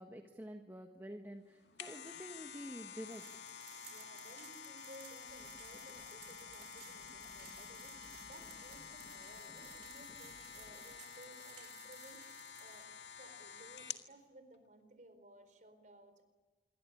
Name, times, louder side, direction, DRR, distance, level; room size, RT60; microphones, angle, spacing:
voice 1, 0.0-3.3, equal, 15° right, 4 dB, 1.4 m, -48 dB
sound 1, 1.5-14.1 14.5-14.6, left 8 dB, 75° left, 1.9 m, -50 dB
sound 2, 3.1-12.9, right 10 dB, 80° right, 6.4 m, -59 dB
voice 2, 3.9-16.2, right 1 dB, 45° right, 9 dB, 4.3 m, -59 dB
sound 3, 5.2-13.2, left 1 dB, 25° left, 1.6 m, -63 dB
27.0 x 23.5 x 8.7 m, 1.4 s
head